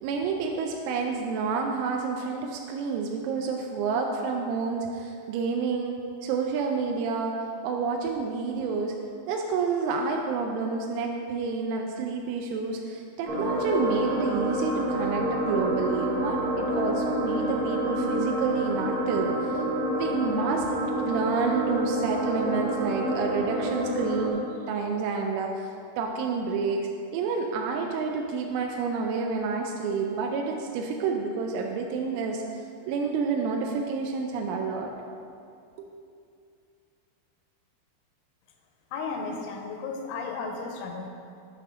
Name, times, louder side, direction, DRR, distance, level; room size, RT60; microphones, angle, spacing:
voice 1, 0.0-8.9 9.3-24.4 24.7-34.9 35.8-35.9, right 4 dB, 85° right, 1 dB, 3.0 m, -29 dB
sound 1, 13.2-24.3, right 1 dB, 60° right, 1.8 m, -28 dB
voice 2, 38.9-41.1, left 4 dB, 85° left, 3 dB, 3.0 m, -34 dB
8.3 x 3.5 x 5.9 m, 2.4 s
omnidirectional pair, 5.5 m